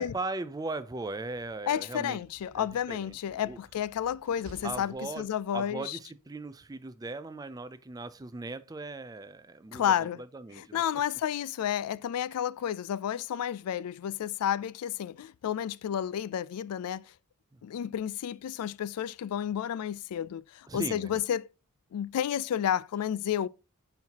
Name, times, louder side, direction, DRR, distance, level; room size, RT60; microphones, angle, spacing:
voice 1, 0.0-2.2 2.6-3.6 4.6-10.8 20.7-21.2, right 3 dB, 15° right, 0.3 m, -38 dB
Slam, 1.0-5.7, right 1 dB, 70° right, 1.1 m, -56 dB
voice 2, 1.7-6.0 9.7-10.2 10.6-17.0 17.6-21.5 21.9-23.5, left 9 dB, 85° left, 0.3 m, -31 dB
9.4 x 4.5 x 2.8 m
head